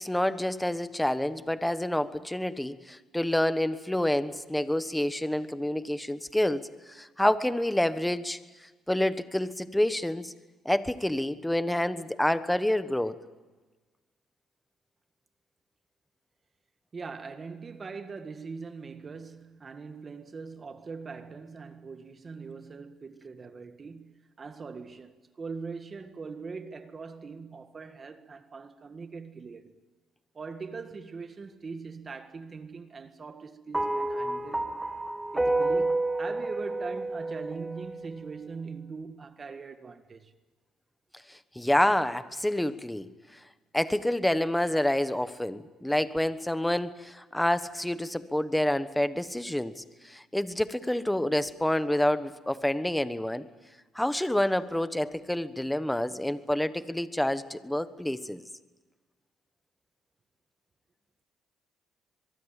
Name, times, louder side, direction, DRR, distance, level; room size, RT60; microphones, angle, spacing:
voice 1, 0.0-6.6 6.9-8.4 8.9-10.3 10.6-13.2 41.3-43.1 43.7-53.4 53.9-58.4, left 1 dB, 5° left, 1.2 m, -28 dB
voice 2, 16.9-29.7 30.3-34.7 35.3-40.3, right 4 dB, 35° right, 1.7 m, -41 dB
sound 1, 33.7-38.2, right 2 dB, 10° right, 1.7 m, -30 dB
23.5 x 22.5 x 9.1 m
cardioid pair, 100°, 0 cm